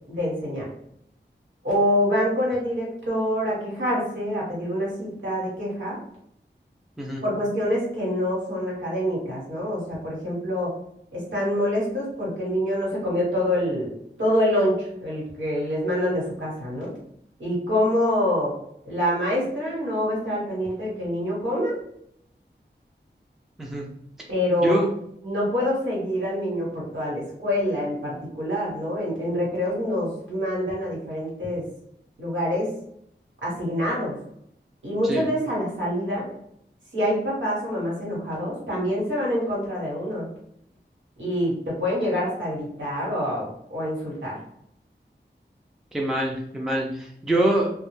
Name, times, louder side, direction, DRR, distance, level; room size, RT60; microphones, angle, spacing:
voice 1, 0.1-0.7 1.6-6.0 7.2-10.7 11.1-13.9 14.2-16.9 17.4-18.5 18.8-21.8 24.3-24.8 25.2-31.6 32.2-32.7 33.4-34.1 34.8-36.3 36.9-40.3 41.2-44.4, equal, 85° right, -6 dB, 1.2 m, -26 dB
voice 2, 45.9-47.7, right 1 dB, ahead, -1 dB, 0.4 m, -24 dB
2.2 x 2.0 x 3.0 m, 0.72 s
wide cardioid pair, 65°, 19 cm